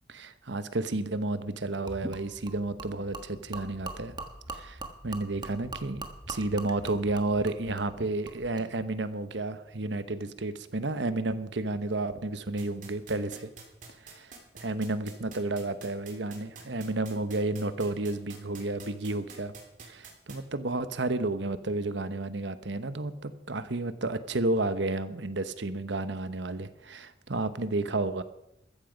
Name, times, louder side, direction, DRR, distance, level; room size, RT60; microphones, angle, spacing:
voice 1, 0.1-4.2 4.5-13.5 14.1-14.3 14.6-19.5 19.8-28.2, right 2 dB, 75° right, 12 dB, 1.1 m, -31 dB
Gurgling / Liquid, 1.9-8.7, right 2 dB, 25° right, 1.4 m, -42 dB
sound 1, 12.6-20.4, right 5 dB, 45° right, 3.6 m, -46 dB
14.5 x 14.0 x 5.2 m, 0.83 s
head